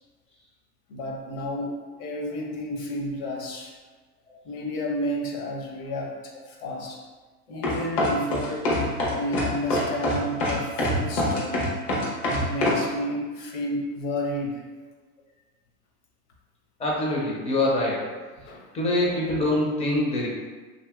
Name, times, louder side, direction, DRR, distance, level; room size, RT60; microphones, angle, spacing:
voice 1, 0.9-3.8 4.4-7.0 7.5-8.7 9.1-11.8 12.3-14.7 18.4-18.7, left 1 dB, 55° left, 0 dB, 0.8 m, -31 dB
sound 1, 7.6-12.8, left 1 dB, 75° left, 1.1 m, -24 dB
voice 2, 16.8-18.1 18.7-20.3, left 1 dB, 15° left, -3 dB, 0.5 m, -24 dB
2.8 x 2.8 x 2.3 m, 1.3 s
hypercardioid pair, 115°, 48 cm